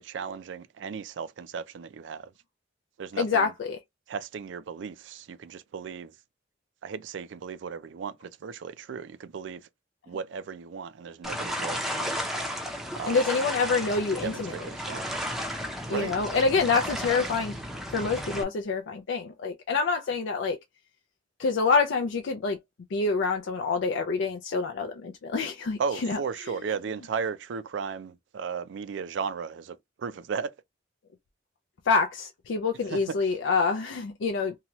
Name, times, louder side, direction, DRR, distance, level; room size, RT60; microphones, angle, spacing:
voice 1, 0.0-2.3 3.0-3.5 4.1-6.1 6.8-9.7 10.1-12.2 12.9-13.2 14.2-15.1 15.9-16.2 25.8-30.5 32.9-33.0, right 6 dB, 75° right, 0.4 m, -35 dB
voice 2, 3.2-3.8 13.1-14.5 15.9-17.5 17.9-20.6 21.4-22.6 22.9-26.2 31.9-34.5, left 4 dB, 85° left, 0.4 m, -26 dB
sound 1, 11.2-18.4, equal, ahead, 0.5 m, -33 dB
2.8 x 2.2 x 2.9 m
head